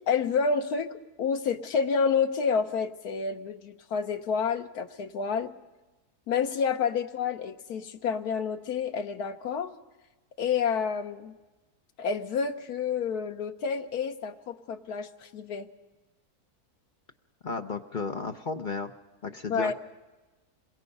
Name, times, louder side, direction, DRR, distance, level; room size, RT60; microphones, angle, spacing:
voice 1, 0.1-5.5 6.3-9.7 10.4-11.4 12.0-15.7 19.5-19.7, left 6 dB, 80° left, 7 dB, 1.5 m, -29 dB
voice 2, 17.4-18.9 19.2-19.7, left 4 dB, 40° left, 6 dB, 0.7 m, -33 dB
27.0 x 22.0 x 5.3 m, 1.2 s
omnidirectional pair, 1.6 m